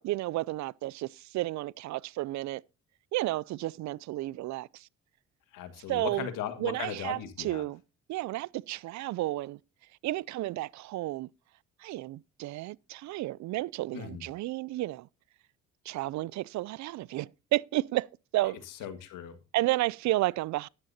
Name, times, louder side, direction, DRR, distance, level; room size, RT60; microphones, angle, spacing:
voice 1, 0.0-2.6 3.1-4.9 5.9-6.3 6.6-7.8 8.1-9.6 10.0-11.3 11.8-15.1 15.9-18.1 18.3-18.6 19.5-20.7, right 17 dB, 55° right, 0.4 m, -32 dB
voice 2, 5.5-7.7 13.9-14.3 18.8-19.4, left 9 dB, 70° left, 1.8 m, -37 dB
13.0 x 10.5 x 2.8 m
supercardioid pair, 70°, 33 cm